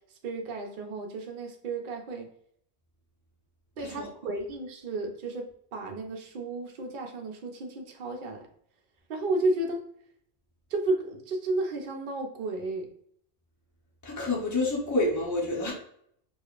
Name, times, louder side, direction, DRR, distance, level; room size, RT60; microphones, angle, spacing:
voice 1, 0.2-2.3 3.8-8.5 9.1-9.8 10.7-12.9, right 2 dB, 55° right, 2 dB, 0.7 m, -32 dB
voice 2, 14.0-15.7, left 2 dB, 20° left, -3 dB, 0.8 m, -28 dB
4.8 x 2.4 x 2.4 m, 0.67 s
omnidirectional pair, 1.1 m